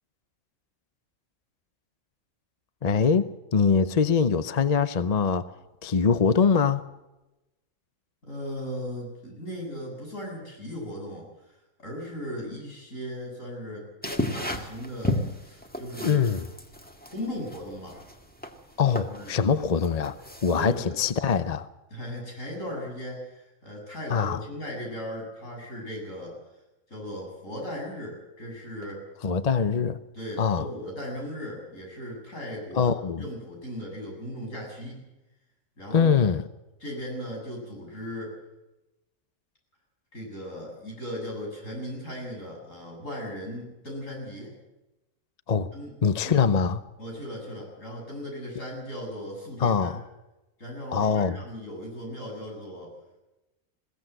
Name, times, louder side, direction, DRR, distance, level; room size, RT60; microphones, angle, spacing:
voice 1, 2.8-5.5 5.8-6.8 16.0-16.4 18.8-21.7 24.1-24.4 29.2-30.0 30.4-30.6 32.7-33.2 35.9-36.5 45.5-45.7 46.0-46.8 49.6-50.0 50.9-51.4, left 6 dB, 35° left, 0.7 m, -23 dB
voice 2, 8.2-13.9 14.3-16.3 17.1-18.1 19.1-19.3 20.5-21.0 21.9-26.4 26.9-29.0 30.1-32.9 33.2-35.0 35.8-36.3 36.8-38.4 40.1-44.5 45.7-45.9 47.0-50.0 50.6-52.9, equal, 70° left, 7.9 m, -37 dB
sound 1, 14.0-20.8, left 1 dB, 5° left, 1.9 m, -34 dB
21.0 x 17.0 x 7.8 m
omnidirectional pair, 1.4 m